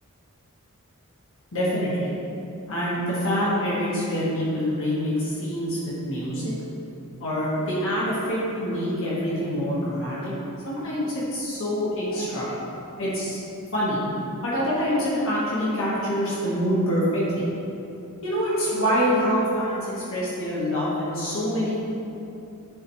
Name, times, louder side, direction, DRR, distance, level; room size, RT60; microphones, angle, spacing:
voice 1, 1.5-2.1 2.7-6.4 7.2-10.3 10.6-12.6 13.0-13.4 13.7-14.0 14.4-17.4 18.2-21.8, equal, 65° left, -8 dB, 1.5 m, -25 dB
10.5 x 4.0 x 3.1 m, 2.8 s
head